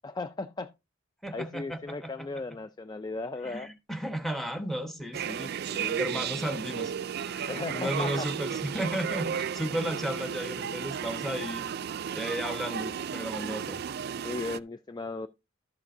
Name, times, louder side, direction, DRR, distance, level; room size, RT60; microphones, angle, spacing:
voice 1, 0.0-0.7 1.3-3.7 5.7-6.5 7.5-8.3 14.2-15.3, left 3 dB, 20° left, 0.4 m, -36 dB
voice 2, 1.2-2.3 3.4-6.9 7.2-11.7 12.1-13.8, right 1 dB, ahead, 1.2 m, -34 dB
sound 1, 5.1-14.6, right 8 dB, 50° right, 0.4 m, -34 dB
12.5 x 7.2 x 2.6 m
head